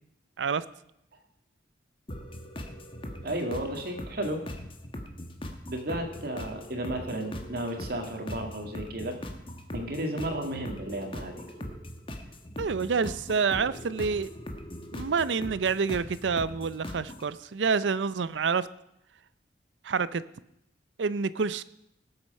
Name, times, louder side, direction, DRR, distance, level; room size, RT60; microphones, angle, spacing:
sound 1, 2.1-17.3, left 1 dB, 30° left, 1.2 m, -40 dB
voice 1, 3.2-4.4 5.7-9.2 9.7-11.4, right 1 dB, 60° right, 4 dB, 2.0 m, -33 dB
voice 2, 12.6-14.3 14.9-18.7 19.8-20.2 21.0-21.6, right 5 dB, 85° right, 17 dB, 0.5 m, -28 dB
18.0 x 8.0 x 5.4 m, 0.82 s
head